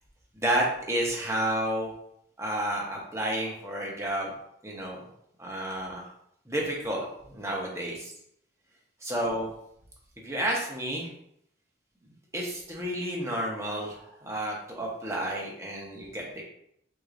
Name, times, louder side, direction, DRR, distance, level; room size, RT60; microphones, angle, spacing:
voice 1, 0.3-1.9 2.4-4.3 4.6-5.0 5.4-6.1 6.5-8.1 9.0-9.5 10.2-11.1 12.3-16.4, right 1 dB, 15° right, -2 dB, 0.9 m, -31 dB
4.8 x 3.8 x 2.5 m, 0.73 s
head